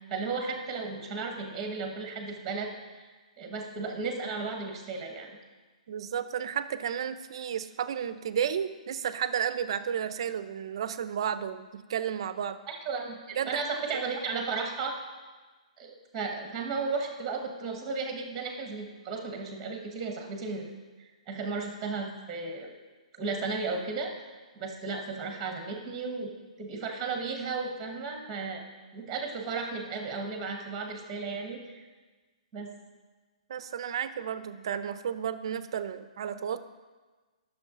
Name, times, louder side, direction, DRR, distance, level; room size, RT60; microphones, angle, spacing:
voice 1, 0.1-2.7 3.4-5.4 12.7-14.9 15.8-20.7 21.0-22.7 23.1-26.3 26.6-28.6 28.9-31.8 32.5-32.7, right 4 dB, 10° right, 3 dB, 1.0 m, -34 dB
voice 2, 5.9-12.6 13.4-13.7 33.5-36.6, right 8 dB, 45° right, 13 dB, 0.4 m, -32 dB
11.5 x 6.4 x 3.6 m, 1.3 s
hypercardioid pair, 170°, 4 cm